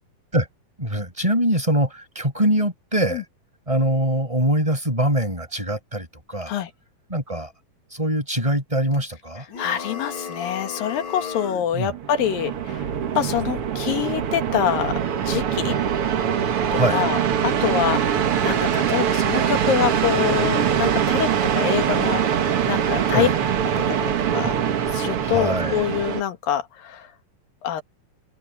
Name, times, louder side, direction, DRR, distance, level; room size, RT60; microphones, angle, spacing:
voice 1, 0.8-3.2 3.7-6.6 7.1-7.5 7.9-9.5 11.7-11.9 16.7-17.0 23.1-23.3 25.2-25.9, right 1 dB, 10° right, 8.0 m, -23 dB
sound 1, 9.5-11.7, left 6 dB, 40° left, 3.4 m, -34 dB
voice 2, 9.6-12.9 13.2-14.9 15.2-15.8 16.7-23.3 23.9-24.6 24.9-27.1 27.6-27.8, left 9 dB, 85° left, 3.4 m, -25 dB
sound 2, 11.8-26.2, right 8 dB, 50° right, 1.9 m, -23 dB
omnidirectional pair, 3.9 m